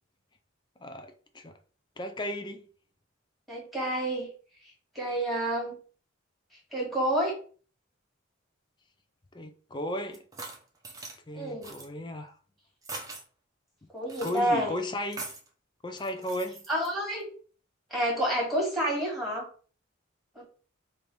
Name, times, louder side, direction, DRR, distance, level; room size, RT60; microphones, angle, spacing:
voice 1, 0.8-1.5 2.0-2.6 9.3-10.2 11.3-12.4 14.2-15.2 15.8-16.6, left 1 dB, 20° left, 0.5 m, -35 dB
voice 2, 3.5-4.3 5.0-5.8 6.7-7.4 11.3-11.7 13.9-14.7 16.7-17.3 17.9-19.5 20.4-20.5, right 1 dB, ahead, 1.7 m, -29 dB
sound 1, 10.1-11.2 11.6-11.9 12.8-13.2 14.1-14.4 15.1-15.5 16.0-16.9, right 3 dB, 15° right, 0.7 m, -41 dB
3.4 x 2.6 x 4.5 m
head